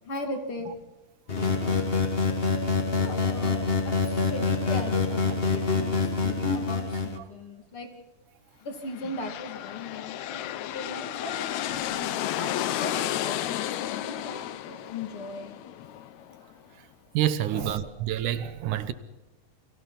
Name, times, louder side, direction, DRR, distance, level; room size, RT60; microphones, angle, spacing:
voice 1, 0.0-0.7 1.6-1.9 2.9-7.9 8.6-11.4 11.8-15.6 17.5-18.1, left 2 dB, 45° left, 3.2 m, -39 dB
sound 1, 1.3-7.2, left 4 dB, 25° left, 1.3 m, -26 dB
sound 2, 8.8-16.5, left 12 dB, 75° left, 2.0 m, -32 dB
voice 2, 17.1-18.9, right 11 dB, 80° right, 2.5 m, -27 dB
30.0 x 22.5 x 4.2 m
omnidirectional pair, 3.6 m